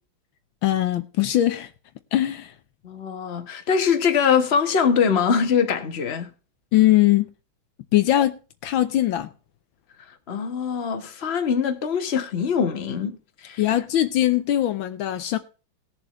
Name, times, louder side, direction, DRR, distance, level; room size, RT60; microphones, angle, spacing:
voice 1, 0.6-1.7 2.1-2.5 6.7-7.3 7.9-8.4 8.6-9.3 13.6-15.4, left 14 dB, 75° left, 1.5 m, -21 dB
voice 2, 2.8-6.3 10.3-13.6, left 6 dB, 35° left, 1.3 m, -23 dB
19.5 x 7.0 x 3.1 m
omnidirectional pair, 2.3 m